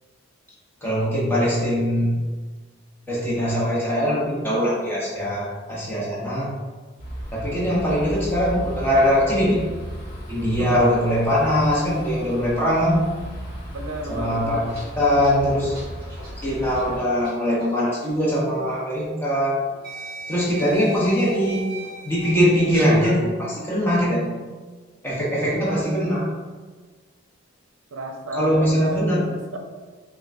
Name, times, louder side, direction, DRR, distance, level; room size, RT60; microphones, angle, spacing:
voice 1, 0.8-2.1 3.1-6.5 7.3-9.6 10.3-13.0 14.1-14.6 15.0-15.8 16.4-19.6 20.3-21.7 22.0-24.3 25.0-26.3 28.3-29.2, equal, 10° left, -7 dB, 0.8 m, -21 dB
sound 1, 7.0-17.0, equal, 40° left, 0.9 m, -35 dB
voice 2, 13.7-14.7 16.8-17.0 23.9-24.1 25.4-25.8 27.9-29.6, right 1 dB, 75° right, 2 dB, 0.6 m, -33 dB
sound 2, 14.3-17.3 17.6-17.8 18.9-19.0 19.8-23.2, right 1 dB, 45° right, 1.3 m, -38 dB
5.4 x 2.3 x 2.5 m, 1.4 s
head